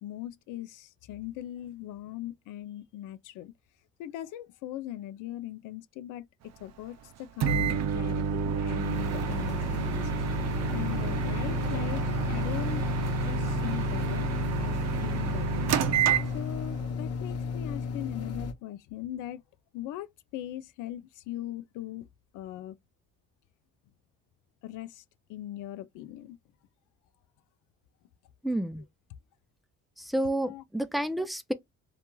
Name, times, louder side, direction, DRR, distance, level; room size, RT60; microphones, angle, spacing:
voice 1, 0.0-3.5 4.0-10.1 10.7-12.0 12.3-12.8 13.2-14.3 14.6-15.7 16.3-19.4 19.7-22.1 22.3-22.8 24.6-25.0 25.3-26.4 30.4-30.6, left 13 dB, 90° left, 0.5 m, -40 dB
Microwave oven, 7.4-16.8, right 6 dB, 60° right, 0.5 m, -29 dB
sound 1, 8.9-18.5, left 5 dB, 55° left, 0.8 m, -34 dB
voice 2, 28.4-28.8 30.0-31.5, right 1 dB, ahead, 0.4 m, -30 dB
3.0 x 2.4 x 2.2 m
cardioid pair, 90°, 30 cm